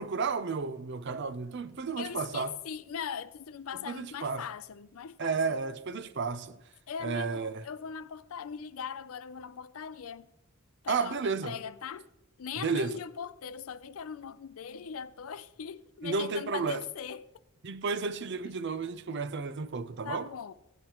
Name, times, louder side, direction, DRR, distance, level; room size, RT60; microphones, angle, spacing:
voice 1, 0.0-2.6 3.9-4.5 5.2-6.6 7.0-7.6 10.9-11.6 12.6-13.0 16.0-16.8 17.6-20.3, right 4 dB, 55° right, 0.6 m, -32 dB
voice 2, 2.0-5.4 6.9-10.3 10.8-11.1 11.4-12.1 12.4-17.3 20.0-20.5, left 7 dB, 85° left, 0.5 m, -40 dB
15.0 x 9.7 x 2.9 m
head